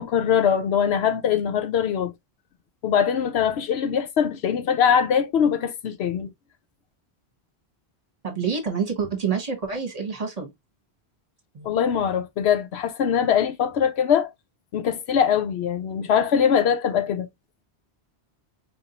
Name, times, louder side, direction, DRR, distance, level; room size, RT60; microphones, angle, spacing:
voice 1, 0.0-2.1 2.8-6.3 11.6-14.3 14.7-17.3, left 8 dB, 80° left, 0.9 m, -22 dB
voice 2, 8.2-10.5 11.5-11.7, right 6 dB, 40° right, 1.1 m, -27 dB
4.7 x 2.6 x 2.8 m
omnidirectional pair, 1.1 m